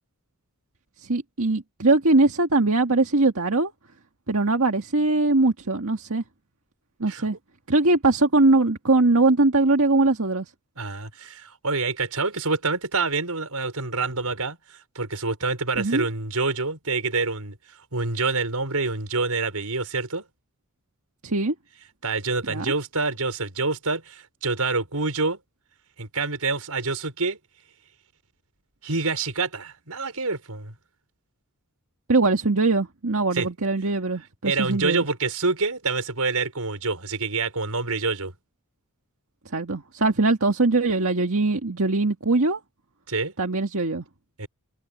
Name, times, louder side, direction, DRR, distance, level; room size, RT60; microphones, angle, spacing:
voice 1, 1.0-3.7 4.3-6.2 7.0-7.4 7.7-10.5 15.8-16.1 21.2-21.5 22.5-22.7 32.1-35.1 39.5-42.6 43.4-44.1, right 2 dB, 70° right, 1.9 m, -21 dB
voice 2, 10.8-17.6 17.9-20.2 22.0-25.4 26.0-27.4 28.8-30.7 33.3-33.5 34.4-38.3 43.1-43.3 44.4-44.5, right 3 dB, 85° right, 5.3 m, -27 dB
head